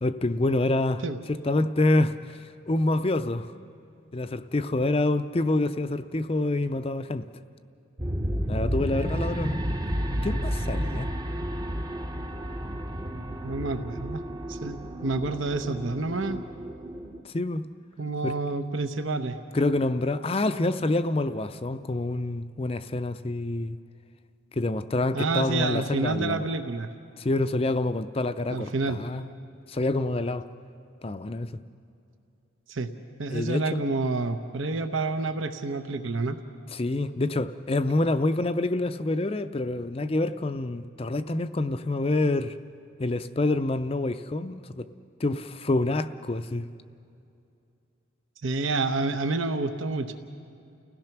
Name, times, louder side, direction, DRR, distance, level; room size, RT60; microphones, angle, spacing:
voice 1, 0.0-1.0 1.3-3.5 4.1-7.2 8.5-9.6 10.2-11.1 17.2-17.6 18.2-18.3 19.5-23.8 24.5-26.4 27.2-29.3 29.7-30.5 31.0-31.5 33.3-33.8 36.7-42.6 43.0-44.9 45.2-46.7, left 2 dB, 30° left, 0.5 m, -27 dB
sound 1, 8.0-17.2, equal, 20° right, 0.7 m, -31 dB
voice 2, 13.4-14.2 14.5-16.4 18.0-19.4 25.1-26.9 28.5-29.0 32.7-32.9 33.2-36.4 48.4-50.1, right 3 dB, 75° right, 0.9 m, -28 dB
30.0 x 17.0 x 5.9 m
head